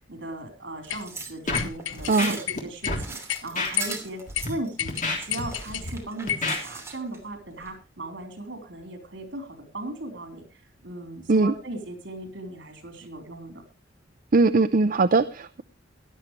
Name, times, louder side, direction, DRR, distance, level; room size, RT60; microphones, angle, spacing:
voice 1, 0.1-4.2 4.5-10.4 10.8-13.6, right 1 dB, 65° right, 4 dB, 4.3 m, -37 dB
sound 1, 0.8-7.2 7.6-7.7, right 3 dB, 15° right, 2.8 m, -40 dB
sound 2, 0.9-1.0 1.5-2.1 2.5-3.0 3.3-3.4 3.8-4.0 4.3-4.4 4.8-5.9 6.3-6.5, left 10 dB, 90° left, 0.6 m, -30 dB
Scratching (performance technique), 1.5-1.7 2.0-2.6 2.9-3.0 3.6-3.7 4.3-4.5 4.9-5.9 6.3-6.6, left 2 dB, 45° left, 3.4 m, -29 dB
voice 2, 14.3-15.6, right 3 dB, 50° right, 10 dB, 0.6 m, -20 dB
17.5 x 11.5 x 3.3 m, 0.29 s
head